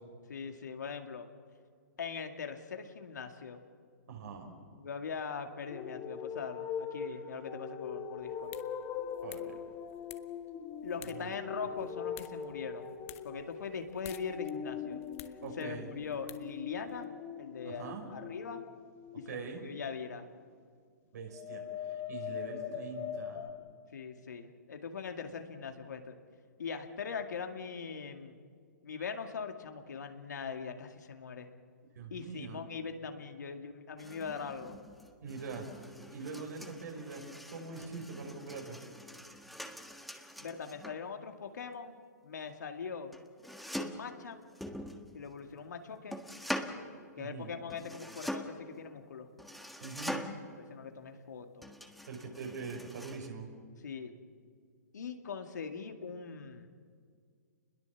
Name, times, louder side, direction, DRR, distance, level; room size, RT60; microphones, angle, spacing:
voice 1, 0.3-1.3 2.0-3.6 4.7-8.5 10.8-12.9 13.2-15.0 15.6-18.6 19.1-20.3 23.9-26.2 26.6-28.4 28.8-31.5 32.1-34.8 40.4-42.0 42.2-43.1 43.8-44.4 45.1-46.2 47.2-49.3 50.6-51.7 53.8-54.1 54.9-56.7, left 6 dB, 75° left, 5 dB, 2.2 m, -41 dB
voice 2, 4.1-4.5 9.2-9.6 11.1-11.4 15.4-15.9 17.6-18.1 19.3-19.6 21.1-23.4 32.0-32.6 35.2-35.7 36.1-37.2 37.5-38.8 47.2-47.5 49.8-50.2 52.1-53.5, right 4 dB, 70° right, 1 dB, 5.4 m, -43 dB
sound 1, 5.7-19.8 21.3-23.5, left 7 dB, 25° left, 1.6 m, -41 dB
sound 2, 8.2-17.0, left 13 dB, 50° left, 1.4 m, -55 dB
sound 3, 34.0-41.0 43.1-44.1 44.6-45.5 46.1-46.8 47.7-48.6 49.4-50.5 51.6-53.3, equal, ahead, 1.6 m, -43 dB
28.5 x 21.5 x 7.2 m, 2.1 s
hypercardioid pair, 130°, 9 cm